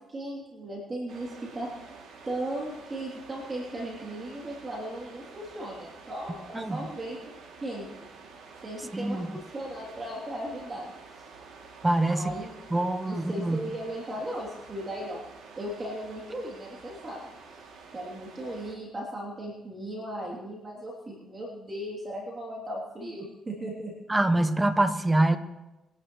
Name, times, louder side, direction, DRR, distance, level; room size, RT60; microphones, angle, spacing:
voice 1, 0.1-1.7 2.2-7.9 8.6-10.9 11.1-11.2 12.1-12.7 13.0-15.2 15.6-17.2 17.9-23.9, right 1 dB, 30° right, -3 dB, 3.2 m, -37 dB
sound 1, 1.1-18.7, right 4 dB, 80° right, 2.8 m, -49 dB
voice 2, 8.9-9.3 11.8-12.3 12.7-13.6 24.1-25.4, right 1 dB, 15° right, 10 dB, 1.1 m, -24 dB
23.0 x 11.0 x 3.2 m, 1.0 s
cardioid pair, 90°, 0 cm